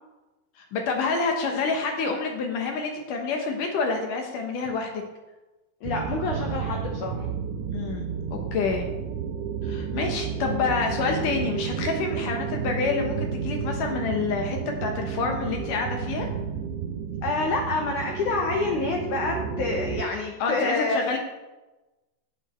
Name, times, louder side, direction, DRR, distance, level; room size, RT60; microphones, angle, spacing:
voice 1, 0.6-5.0 7.7-8.9 9.6-16.3 20.4-21.2, left 4 dB, 70° left, 3 dB, 2.0 m, -28 dB
voice 2, 5.8-7.3 17.2-21.0, left 3 dB, 85° left, 2 dB, 1.7 m, -27 dB
sound 1, 5.8-20.0, right 7 dB, 90° right, 2.9 m, -31 dB
16.5 x 6.6 x 4.4 m, 1.1 s
omnidirectional pair, 5.1 m